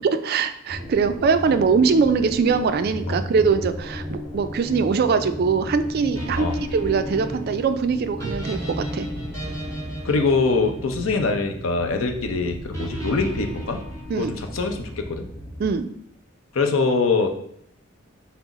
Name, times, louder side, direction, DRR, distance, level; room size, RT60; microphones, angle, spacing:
voice 1, 0.0-9.1 14.1-14.3 15.6-15.9, right 5 dB, 50° right, 10 dB, 0.3 m, -22 dB
sound 1, 0.7-15.8, equal, ahead, 1.6 m, -35 dB
sound 2, 6.2-11.4 12.7-14.7, right 1 dB, 15° left, 1.4 m, -35 dB
voice 2, 10.0-13.8 14.2-15.3 16.5-17.3, left 4 dB, 80° left, 5 dB, 0.6 m, -23 dB
5.9 x 2.0 x 3.9 m, 0.69 s
head